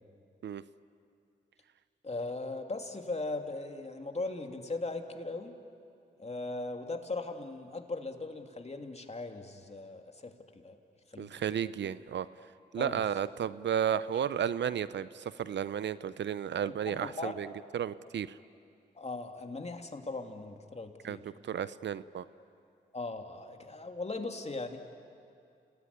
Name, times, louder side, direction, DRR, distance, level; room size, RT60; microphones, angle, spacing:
voice 1, 2.0-5.6 6.2-10.8 11.1-11.3 12.8-13.0 16.6-17.3 18.9-21.2 22.9-24.8, left 2 dB, 35° left, 4 dB, 2.8 m, -39 dB
voice 2, 11.2-12.3 12.7-18.4 21.0-22.2, right 9 dB, 75° right, 16 dB, 0.7 m, -33 dB
29.5 x 19.0 x 9.8 m, 2.5 s
supercardioid pair, 45°, 19 cm